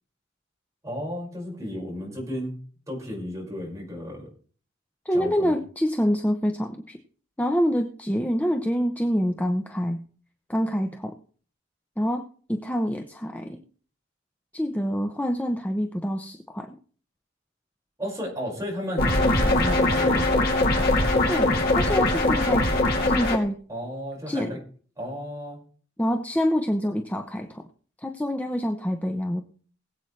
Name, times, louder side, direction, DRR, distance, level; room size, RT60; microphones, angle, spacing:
voice 1, 0.8-2.6 2.9-4.3 5.1-5.5 18.0-20.4 23.7-24.6 25.0-25.6, equal, 15° right, -3 dB, 5.5 m, -33 dB
voice 2, 5.1-7.0 7.4-10.0 10.5-11.2 12.0-12.2 12.5-13.6 14.5-16.7 21.3-22.7 23.1-23.6 24.3-24.6 26.0-27.6 28.0-29.4, equal, 10° left, 4 dB, 0.8 m, -26 dB
sound 1, 19.0-23.4, left 2 dB, 55° left, 3.0 m, -21 dB
21.0 x 8.2 x 3.3 m, 0.43 s
head